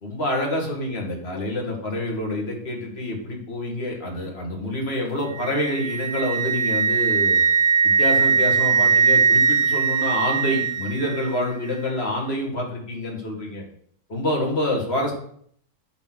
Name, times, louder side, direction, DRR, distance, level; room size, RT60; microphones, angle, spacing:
voice 1, 0.0-7.4 7.8-13.6 14.1-15.1, left 1 dB, 50° left, 0 dB, 2.1 m, -27 dB
Wind instrument woodwind instrument, 5.4-11.3, right 6 dB, 75° right, 1.1 m, -20 dB
8.3 x 4.1 x 6.2 m, 0.63 s
omnidirectional pair, 1.4 m